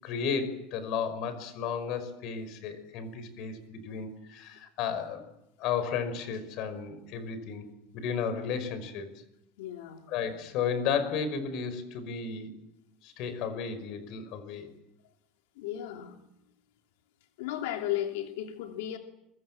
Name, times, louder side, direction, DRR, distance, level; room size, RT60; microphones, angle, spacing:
voice 1, 0.0-5.3 5.6-7.7 7.9-9.1 10.1-12.5 13.0-14.7, left 6 dB, 45° left, 11 dB, 5.3 m, -33 dB
voice 2, 9.6-10.1 15.6-16.2 17.4-19.0, left 12 dB, 90° left, 3 dB, 2.8 m, -34 dB
29.5 x 24.5 x 7.6 m, 0.85 s
cardioid pair, 170°, 0 cm